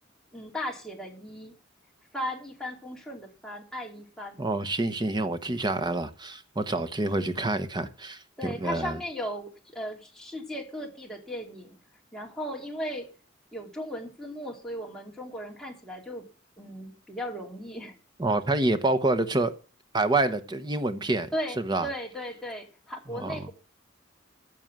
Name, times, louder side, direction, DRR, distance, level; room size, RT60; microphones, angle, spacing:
voice 1, 0.3-1.5 2.1-4.5 8.4-11.8 12.1-13.1 13.5-16.2 16.6-18.0 21.3-23.5, equal, 5° left, 3.0 m, -36 dB
voice 2, 4.4-9.0 18.2-19.5 19.9-21.3 21.6-21.9 23.1-23.4, right 2 dB, 20° right, 1.0 m, -27 dB
14.5 x 6.2 x 7.4 m
head